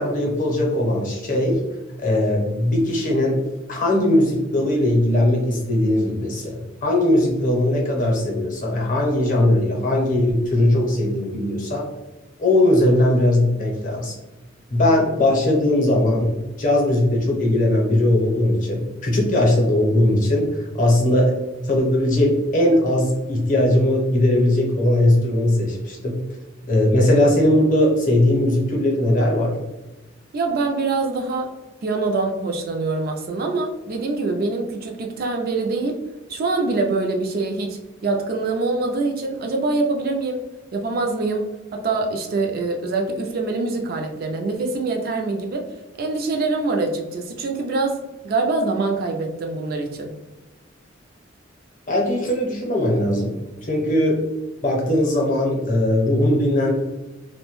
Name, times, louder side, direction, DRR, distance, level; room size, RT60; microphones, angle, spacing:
voice 1, 0.0-1.6 2.0-3.4 3.7-11.9 12.4-14.1 14.7-21.3 21.7-26.2 26.7-29.5 51.9-53.3 53.6-54.2 54.6-56.7, left 1 dB, 40° left, -1 dB, 0.7 m, -19 dB
voice 2, 30.3-31.5 31.8-35.9 36.3-40.4 40.7-41.5 41.7-45.6 46.0-48.0 48.2-50.1, right 3 dB, 50° right, 2 dB, 0.3 m, -24 dB
2.6 x 2.1 x 2.9 m, 1.1 s
head